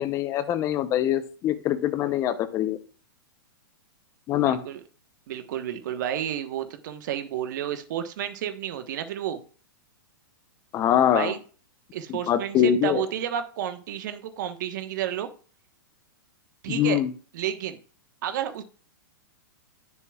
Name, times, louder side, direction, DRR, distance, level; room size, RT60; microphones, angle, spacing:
voice 1, 0.0-2.8 4.3-4.6 10.7-11.3 12.1-13.0 16.7-17.1, left 10 dB, 25° left, 12 dB, 0.7 m, -23 dB
voice 2, 4.4-4.8 5.3-9.4 11.1-11.4 11.9-15.3 16.6-17.0 17.3-17.8 18.2-18.6, right 10 dB, 60° right, 8 dB, 1.2 m, -31 dB
10.0 x 6.9 x 2.4 m, 0.39 s
hypercardioid pair, 145°, 12 cm